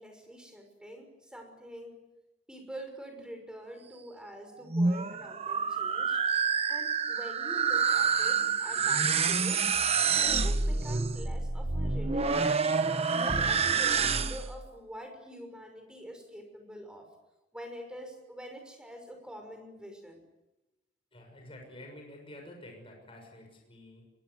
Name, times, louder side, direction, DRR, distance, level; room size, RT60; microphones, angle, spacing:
voice 1, 0.0-2.0 2.5-6.2 6.7-9.7 10.0-12.8 13.1-17.1 17.5-20.2, equal, 5° right, 5 dB, 6.0 m, -45 dB
sound 1, 4.6-14.6, right 5 dB, 35° right, 1.1 m, -28 dB
voice 2, 21.1-24.1, left 1 dB, 30° left, 2 dB, 6.5 m, -49 dB
23.5 x 22.5 x 9.6 m, 0.97 s
head